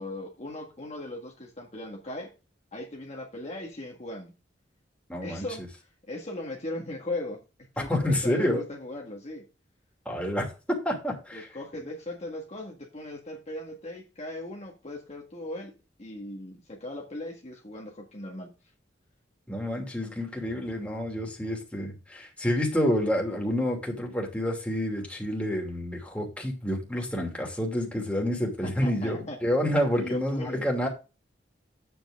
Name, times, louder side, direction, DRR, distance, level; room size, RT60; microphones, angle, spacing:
voice 1, 0.0-2.3 2.7-4.3 5.2-5.6 6.1-7.4 7.7-9.4 11.3-15.7 16.0-18.5 28.6-29.4 29.9-30.7, left 1 dB, 40° left, 1.7 m, -38 dB
voice 2, 5.1-5.5 7.8-8.6 10.0-11.5 19.5-30.9, equal, 5° left, 2.8 m, -28 dB
10.0 x 7.9 x 3.7 m
head